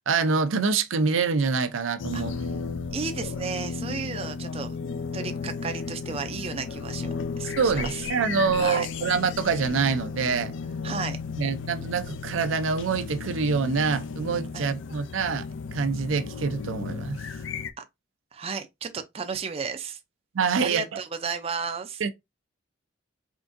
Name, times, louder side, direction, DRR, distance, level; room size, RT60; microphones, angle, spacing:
voice 1, 0.1-2.3 7.6-10.5 11.4-15.5 15.7-17.2 20.3-20.9 22.0-22.1, right 5 dB, 80° right, 0.5 m, -25 dB
sound 1, 2.0-17.7, left 5 dB, 70° left, 0.4 m, -34 dB
voice 2, 2.1-2.5 2.9-4.8 5.1-8.1 8.6-8.9 10.8-11.2 14.5-14.7 17.8-17.9 18.3-20.0 20.6-22.0, right 5 dB, 30° right, 0.4 m, -33 dB
3.8 x 3.4 x 2.5 m
head